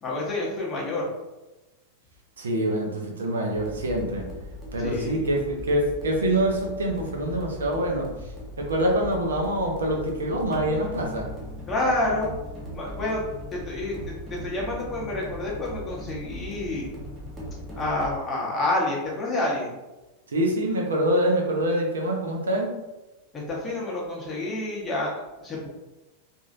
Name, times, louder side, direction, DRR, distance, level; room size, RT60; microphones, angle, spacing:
voice 1, 0.0-1.1 4.8-5.2 11.7-12.3 12.7-13.2 13.5-16.9 17.7-19.8 23.3-25.7, left 2 dB, 20° left, -4 dB, 0.9 m, -28 dB
voice 2, 2.4-4.3 4.7-5.4 5.7-8.1 8.6-11.3 20.3-22.8, right 1 dB, 70° right, 0 dB, 0.6 m, -25 dB
sound 1, 3.5-18.2, equal, 15° right, 0.7 m, -39 dB
2.9 x 2.6 x 2.5 m, 1.1 s
figure-of-eight pair, 90°, 0 cm